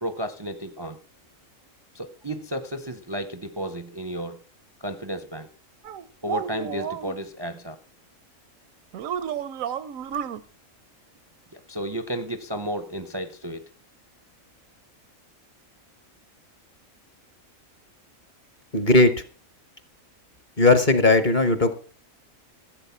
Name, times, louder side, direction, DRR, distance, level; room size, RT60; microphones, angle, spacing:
voice 1, 0.0-1.0 1.9-4.4 4.8-5.5 6.2-7.8 11.5-13.6, equal, 25° right, 10 dB, 0.7 m, -32 dB
sound 1, 5.8-7.1 8.9-10.4, right 8 dB, 75° right, 1.2 m, -31 dB
voice 2, 18.7-19.1 20.6-21.7, left 2 dB, 35° left, 10 dB, 1.3 m, -17 dB
15.0 x 8.1 x 5.7 m, 0.38 s
omnidirectional pair, 1.4 m